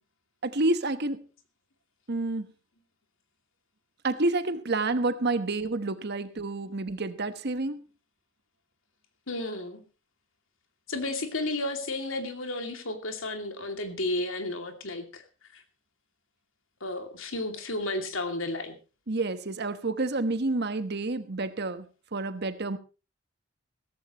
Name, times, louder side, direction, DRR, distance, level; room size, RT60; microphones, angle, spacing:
voice 1, 0.4-1.3 2.1-2.5 4.0-7.8 19.1-22.8, right 2 dB, 55° right, 11 dB, 1.2 m, -29 dB
voice 2, 9.3-9.8 10.9-15.2 15.5-15.6 16.8-18.7, left 2 dB, 75° left, 6 dB, 2.6 m, -32 dB
16.5 x 14.5 x 3.0 m, 0.32 s
head